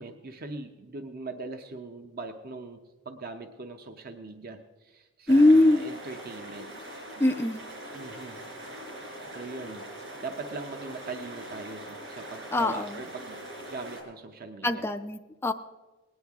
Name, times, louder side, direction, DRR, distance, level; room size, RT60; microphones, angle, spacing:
voice 1, 0.0-6.7 7.9-8.4 9.3-9.9 10.2-13.4 13.7-14.9, right 3 dB, 45° right, 6 dB, 0.6 m, -41 dB
voice 2, 5.3-5.8 7.2-7.6 12.5-12.9 14.6-15.5, left 2 dB, 10° left, 6 dB, 0.3 m, -21 dB
sound 1, 5.3-14.0, right 1 dB, 60° right, 4.2 m, -42 dB
19.0 x 9.7 x 3.5 m, 1.2 s
head